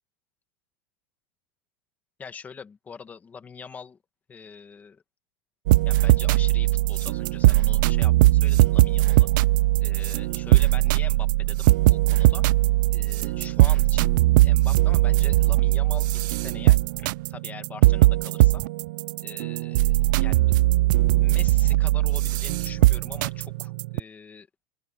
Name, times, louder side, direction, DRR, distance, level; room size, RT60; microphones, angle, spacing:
voice 1, 2.2-4.0 4.3-5.0 5.8-9.3 9.8-12.5 12.9-18.6 19.2-20.6 21.2-24.5, left 6 dB, 15° left, 1.8 m, -43 dB
sound 1, 5.7-24.0, right 18 dB, 55° right, 0.4 m, -20 dB
open air
supercardioid pair, 175°, 12 cm